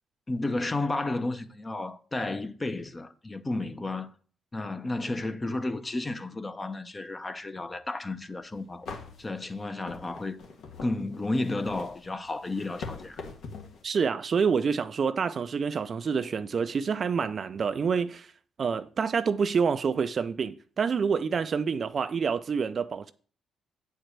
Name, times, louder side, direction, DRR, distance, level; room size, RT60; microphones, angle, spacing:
voice 1, 0.3-4.1 4.5-8.9 9.2-10.4 10.8-13.2, left 2 dB, 25° left, 0.8 m, -32 dB
sound 1, 8.3-8.4 8.8-13.8, left 4 dB, 70° left, 1.5 m, -43 dB
voice 2, 13.8-18.3 18.6-23.1, right 6 dB, 45° right, 0.5 m, -27 dB
8.8 x 4.5 x 6.5 m
cardioid pair, 90°, 0 cm